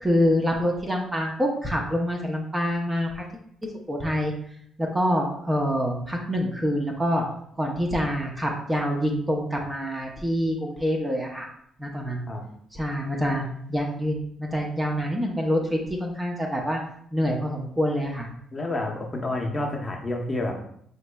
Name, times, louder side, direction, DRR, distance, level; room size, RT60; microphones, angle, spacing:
voice 1, 0.0-3.2 3.9-4.3 4.8-7.2 7.6-11.5 11.8-12.3 12.7-16.8 17.1-18.3, equal, 15° right, 0 dB, 0.6 m, -26 dB
voice 2, 18.5-20.5, left 2 dB, 20° left, 0 dB, 0.8 m, -29 dB
5.3 x 3.0 x 2.2 m, 0.67 s
cardioid pair, 90°, 0 cm